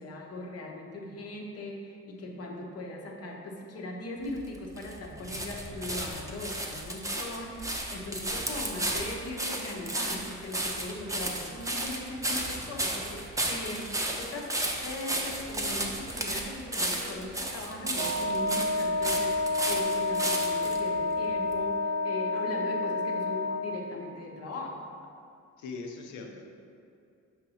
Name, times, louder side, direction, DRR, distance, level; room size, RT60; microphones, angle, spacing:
voice 1, 0.0-24.9, left 2 dB, 55° left, 0 dB, 0.9 m, -39 dB
sound 1, 4.2-20.8 21.5-21.6, right 1 dB, 10° right, 0.7 m, -33 dB
Wind instrument woodwind instrument, 17.9-23.7, left 2 dB, 75° right, 1.2 m, -29 dB
voice 2, 25.6-26.5, left 4 dB, 75° left, 2 dB, 0.8 m, -40 dB
6.0 x 2.9 x 5.6 m, 2.6 s
cardioid pair, 90°, 30 cm